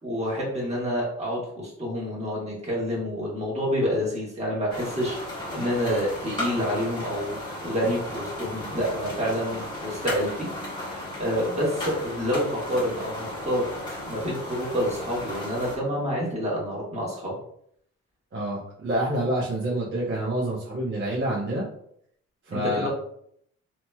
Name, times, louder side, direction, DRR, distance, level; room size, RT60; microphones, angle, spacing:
voice 1, 0.0-10.5 10.9-17.3 22.5-22.9, equal, 20° right, -5 dB, 1.4 m, -28 dB
sound 1, 4.7-15.8, left 1 dB, 15° left, 1.3 m, -35 dB
voice 2, 18.3-21.6 22.5-22.9, right 1 dB, 40° right, -6 dB, 0.9 m, -27 dB
2.9 x 2.9 x 2.3 m, 0.69 s
cardioid pair, 90°, 30 cm